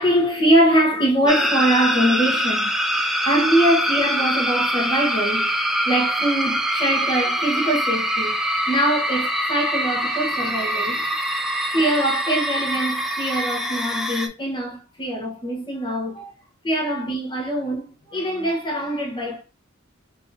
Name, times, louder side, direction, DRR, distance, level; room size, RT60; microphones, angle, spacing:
voice 1, 0.0-2.8 3.2-5.5 5.8-8.4 8.7-11.0 11.7-16.3 16.6-19.4, right 1 dB, 25° left, 1.0 m, -22 dB
sound 1, 1.3-14.3, equal, ahead, 0.3 m, -24 dB
3.7 x 2.8 x 2.6 m
head